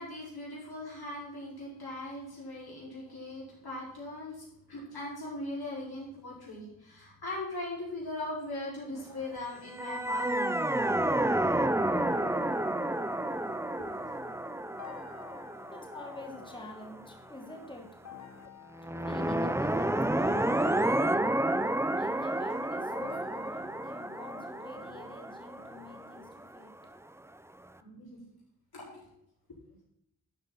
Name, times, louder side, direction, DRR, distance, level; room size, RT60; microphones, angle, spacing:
voice 1, 0.0-10.6 11.9-12.0 27.8-28.2 28.7-29.1, left 2 dB, 80° left, -5 dB, 4.5 m, -40 dB
sound 1, 9.7-16.9 18.8-26.6, right 1 dB, 5° right, 0.5 m, -30 dB
sound 2, 11.9-26.1, left 8 dB, 50° left, 1.0 m, -52 dB
voice 2, 15.7-17.9 19.0-19.9 20.2-21.1 21.9-26.7, left 2 dB, 15° left, 2 dB, 1.4 m, -47 dB
11.5 x 7.4 x 4.0 m, 0.79 s
wide cardioid pair, 85°, 37 cm